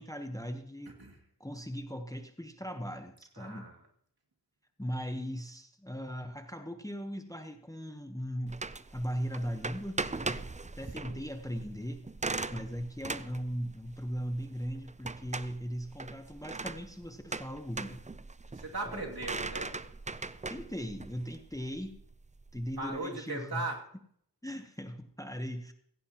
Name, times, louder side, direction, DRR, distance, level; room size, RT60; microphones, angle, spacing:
voice 1, 0.0-1.0 1.4-3.7 4.8-8.6 8.9-10.4 10.8-12.0 12.5-18.0 18.9-19.0 20.5-22.0 22.5-23.6 24.4-25.7, equal, 10° left, 7 dB, 1.0 m, -38 dB
voice 2, 0.9-1.2 3.3-3.9 10.9-11.3 18.4-19.8 22.8-23.9, right 2 dB, 65° right, 0 dB, 2.6 m, -39 dB
sound 1, 8.5-23.0, right 3 dB, 20° right, 0.4 m, -40 dB
16.0 x 15.5 x 2.9 m, 0.66 s
wide cardioid pair, 55°, 41 cm